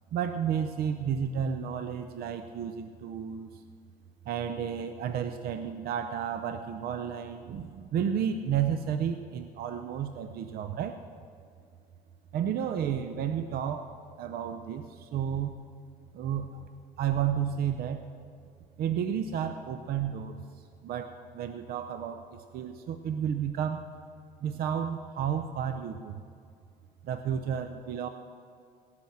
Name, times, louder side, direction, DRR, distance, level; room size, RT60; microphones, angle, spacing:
voice 1, 0.1-3.6 4.3-11.0 12.3-15.5 16.1-16.6 17.0-18.1 18.8-20.4 20.8-23.9 24.4-26.2 27.0-28.1, right 8 dB, 65° right, 8 dB, 0.7 m, -32 dB
17.5 x 6.1 x 7.4 m, 2.4 s
cardioid pair, 110°, 17 cm